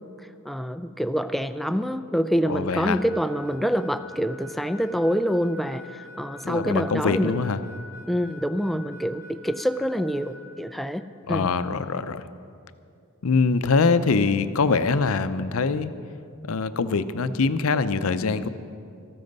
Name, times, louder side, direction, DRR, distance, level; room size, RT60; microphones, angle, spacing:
voice 1, 0.5-7.4 8.1-11.0 11.3-11.5, equal, ahead, 10 dB, 0.3 m, -26 dB
voice 2, 2.5-3.0 6.4-7.6 11.3-12.2 13.2-15.9 16.5-18.5, left 4 dB, 70° left, 12 dB, 0.6 m, -23 dB
Harmonica, 2.8-10.4, left 1 dB, 15° left, 2.8 m, -46 dB
14.0 x 13.0 x 5.3 m, 2.4 s
head